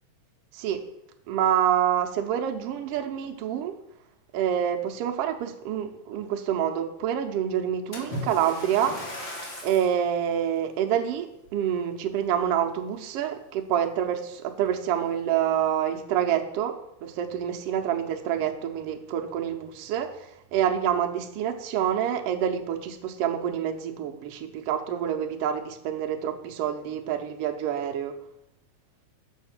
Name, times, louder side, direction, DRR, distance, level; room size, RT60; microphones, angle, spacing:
voice 1, 0.5-0.8 1.3-3.8 4.3-9.0 9.6-28.2, right 9 dB, 90° right, 5 dB, 1.3 m, -27 dB
Splash splatter, 7.9-10.0 10.6-10.8 11.4-11.5, left 1 dB, 40° left, 0.9 m, -37 dB
6.3 x 6.2 x 5.9 m, 0.82 s
omnidirectional pair, 3.6 m